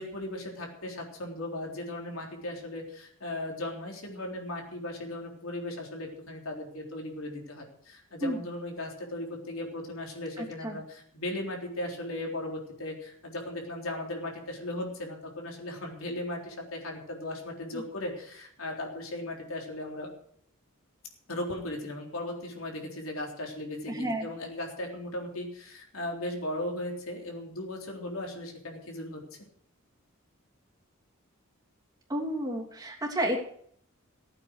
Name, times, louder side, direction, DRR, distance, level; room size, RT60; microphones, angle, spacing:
voice 1, 0.0-20.1 21.3-29.2, left 1 dB, 80° left, 1 dB, 3.8 m, -37 dB
voice 2, 10.4-10.8 17.7-17.8 23.9-24.3 32.1-33.4, right 1 dB, 20° right, -1 dB, 3.0 m, -31 dB
16.0 x 8.8 x 6.4 m, 0.64 s
head